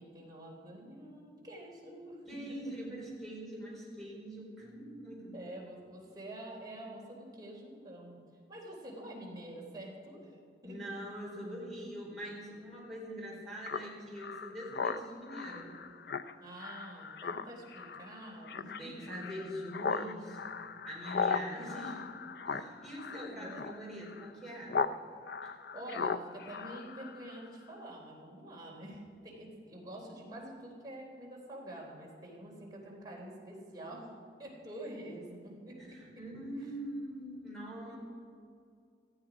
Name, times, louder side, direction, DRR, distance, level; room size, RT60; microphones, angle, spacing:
voice 1, 0.0-2.2 5.3-8.2 8.5-10.9 16.4-19.3 21.5-21.7 23.1-23.6 25.7-34.1 34.4-35.8 36.6-36.7 37.9-38.0, right 1 dB, 20° right, -3 dB, 3.6 m, -47 dB
voice 2, 2.3-5.5 10.6-15.7 18.8-22.0 22.4-24.8 25.4-25.5 35.8-38.0, equal, ahead, -5 dB, 4.4 m, -43 dB
Speech synthesizer, 13.6-25.0 25.3-27.5, left 5 dB, 60° left, 0.5 m, -38 dB
18.5 x 14.5 x 5.0 m, 2.3 s
head